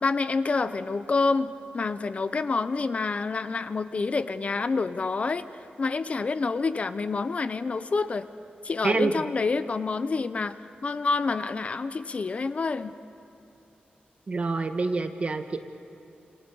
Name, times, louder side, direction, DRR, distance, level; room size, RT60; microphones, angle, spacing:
voice 1, 0.0-5.5 5.8-8.3 8.6-10.6 10.8-13.0, left 4 dB, 40° left, 12 dB, 0.7 m, -27 dB
voice 2, 14.3-15.6, right 3 dB, 40° right, 6 dB, 1.4 m, -26 dB
29.5 x 27.0 x 7.0 m, 2.7 s
wide cardioid pair, 160°, 3 cm